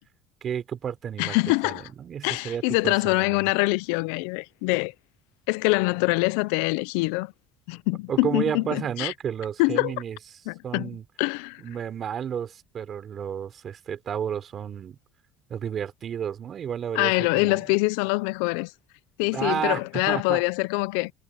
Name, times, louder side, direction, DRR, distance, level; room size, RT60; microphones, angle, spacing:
voice 1, 0.4-1.4 1.6-3.4 8.1-10.2 10.6-11.0 11.6-15.0 15.5-17.6 19.3-20.4, right 8 dB, 45° right, 3.6 m, -31 dB
voice 2, 1.2-1.9 2.2-4.9 5.5-7.3 7.7-9.1 9.6-10.0 10.5-10.9 11.2-11.6 16.9-18.7 19.2-21.1, left 25 dB, 85° left, 0.5 m, -24 dB
supercardioid pair, 95°, 0 cm